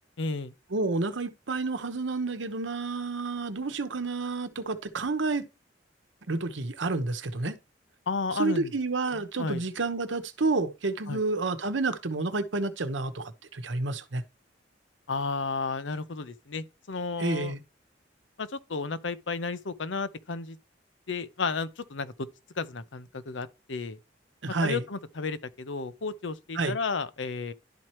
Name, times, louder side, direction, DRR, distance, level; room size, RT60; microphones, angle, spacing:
voice 1, 0.2-0.5 8.1-8.7 9.1-9.6 11.1-11.2 15.1-17.5 18.4-20.6 21.1-22.1 22.6-24.0 24.6-27.5, left 4 dB, 90° left, 0.8 m, -33 dB
voice 2, 0.7-5.4 6.3-7.6 8.3-14.2 17.2-17.6 24.4-24.8 26.5-26.8, right 3 dB, 80° right, 0.9 m, -30 dB
11.5 x 4.4 x 3.0 m
head